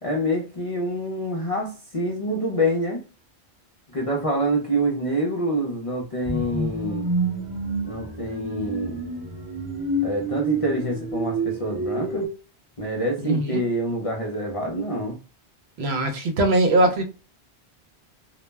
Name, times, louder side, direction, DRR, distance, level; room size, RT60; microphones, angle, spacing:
voice 1, 0.0-3.0 3.9-7.1 7.9-9.0 10.0-12.3 12.8-15.2, right 1 dB, 45° left, 0.4 m, -26 dB
sound 1, 6.2-12.2, right 2 dB, 20° right, 0.7 m, -28 dB
voice 2, 13.2-13.6 15.8-17.0, right 1 dB, 75° right, 0.8 m, -21 dB
2.2 x 2.0 x 3.2 m
omnidirectional pair, 1.1 m